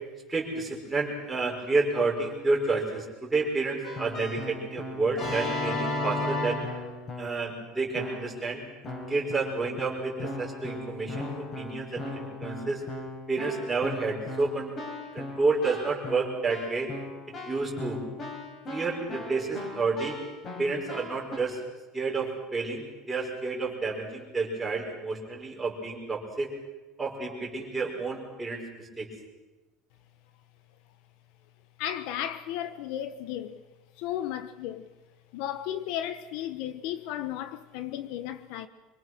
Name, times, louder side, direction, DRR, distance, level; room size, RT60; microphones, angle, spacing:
voice 1, 0.3-6.6 7.2-8.6 9.1-12.8 13.3-14.7 15.1-16.9 17.5-18.0 18.7-20.2 20.6-21.6 21.9-26.5 27.0-29.1, right 3 dB, 10° right, 5.3 m, -30 dB
Keyboard (musical), 3.8-7.5 7.9-8.4 8.8-21.4, left 2 dB, 30° left, 5.5 m, -36 dB
voice 2, 31.8-33.6 34.0-34.8 35.3-38.7, left 11 dB, 65° left, 1.3 m, -34 dB
26.0 x 24.0 x 6.3 m
cardioid pair, 160°, 0 cm